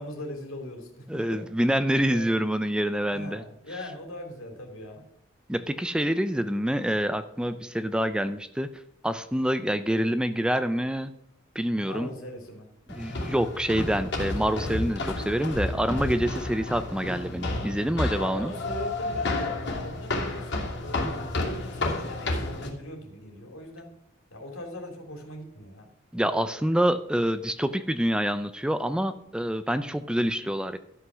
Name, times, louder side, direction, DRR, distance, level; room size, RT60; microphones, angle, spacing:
voice 1, 0.0-1.8 2.1-2.3 3.1-5.0 11.8-12.7 18.1-23.9 24.3-25.9 26.3-26.5, left 1 dB, 85° left, 2 dB, 3.0 m, -40 dB
voice 2, 1.1-3.4 5.5-8.7 9.0-11.1 11.6-12.1 12.9-18.5 26.1-30.8, equal, 5° right, 11 dB, 0.4 m, -26 dB
sound 1, 12.9-22.7, left 2 dB, 60° left, 2.6 m, -31 dB
12.5 x 5.8 x 6.1 m, 0.79 s
head